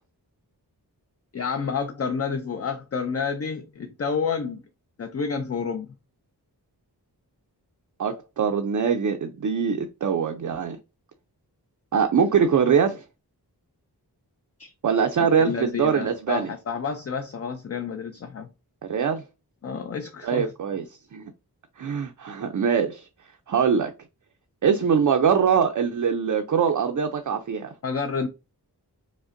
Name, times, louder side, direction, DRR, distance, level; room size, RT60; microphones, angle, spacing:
voice 1, 1.3-4.6 5.0-5.9 14.6-14.7 15.4-18.5 19.6-20.5 27.8-28.3, left 5 dB, 40° left, 0.4 m, -29 dB
voice 2, 8.0-10.8 11.9-13.0 14.8-16.5 18.9-19.2 20.2-20.8 21.1-21.3 21.8-23.1 23.5-23.9 24.6-27.7, right 7 dB, 50° right, 0.4 m, -23 dB
5.0 x 2.1 x 2.5 m
wide cardioid pair, 70°, 40 cm